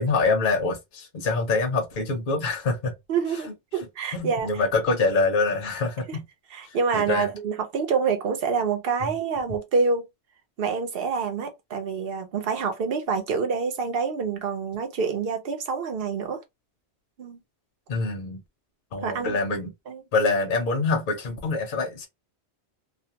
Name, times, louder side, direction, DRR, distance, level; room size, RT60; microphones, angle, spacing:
voice 1, 0.0-2.9 3.3-3.9 4.1-6.2 6.6-7.3 9.0-9.1 17.9-18.4 18.9-19.7 20.1-22.1, left 3 dB, 55° left, 0.7 m, -25 dB
voice 2, 3.1-4.5 6.1-6.2 6.5-10.1 10.6-16.4 17.2-17.4 19.0-19.4 19.9-20.0, right 5 dB, 60° right, 0.8 m, -27 dB
2.5 x 2.0 x 2.7 m
omnidirectional pair, 1.1 m